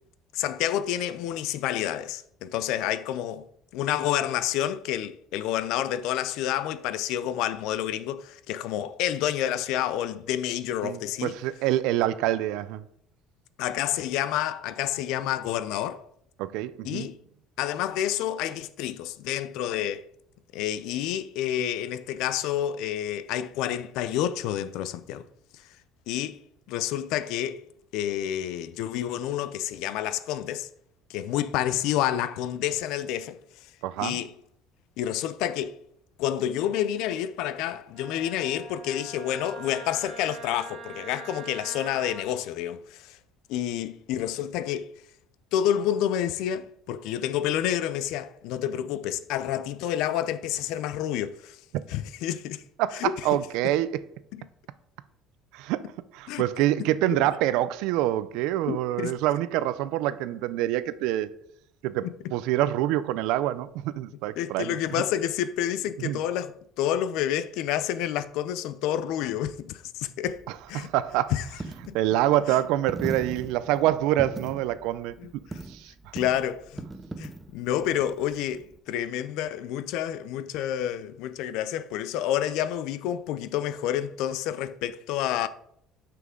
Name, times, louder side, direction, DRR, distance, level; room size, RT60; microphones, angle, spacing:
voice 1, 0.3-3.5 3.7-11.3 13.6-16.0 16.8-17.2 17.6-20.1 20.5-25.3 26.1-26.4 26.7-27.6 27.9-30.7 31.1-33.4 34.0-34.3 35.0-35.8 36.2-43.2 43.5-44.9 45.5-51.6 51.9-52.6 52.9-53.1 54.3-54.4 56.3-56.5 57.1-57.2 58.7-59.1 64.4-70.4 70.7-70.9 71.3-71.4 71.9-72.0 72.5-72.6 73.1-73.2 75.2-75.6 76.1-76.8 77.2-85.5, left 11 dB, 65° left, 0.5 m, -29 dB
voice 2, 10.8-12.8 16.4-17.1 33.8-34.2 52.8-54.0 55.5-61.3 61.8-64.8 66.0-66.2 70.7-71.3 71.9-75.1 75.7-76.1, right 13 dB, 70° right, 0.4 m, -26 dB
Wind instrument woodwind instrument, 37.9-42.3, right 4 dB, 25° right, 2.3 m, -43 dB
Coin (dropping), 70.2-78.8, right 3 dB, 10° right, 0.4 m, -41 dB
9.3 x 5.9 x 3.7 m
cardioid pair, 180°, 0 cm